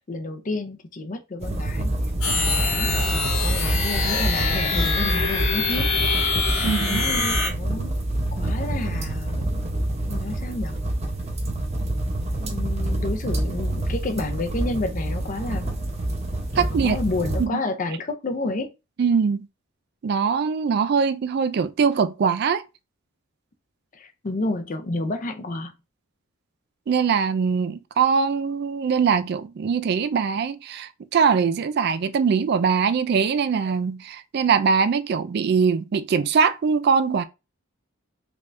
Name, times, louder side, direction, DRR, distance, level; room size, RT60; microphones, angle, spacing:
voice 1, 0.0-1.9 2.3-8.0 8.3-9.6 10.1-10.8 12.4-15.7 16.5-18.7 23.9-25.7, left 2 dB, 40° left, 0.5 m, -30 dB
sound 1, 1.4-17.5, right 1 dB, 30° right, 0.7 m, -27 dB
sound 2, 2.2-7.5, left 4 dB, 90° left, 1.2 m, -25 dB
voice 2, 6.6-7.0 16.6-17.0 17.4-17.5 19.0-19.5 20.0-22.6 26.9-37.2, right 6 dB, 55° right, 0.3 m, -22 dB
3.4 x 3.3 x 2.5 m
head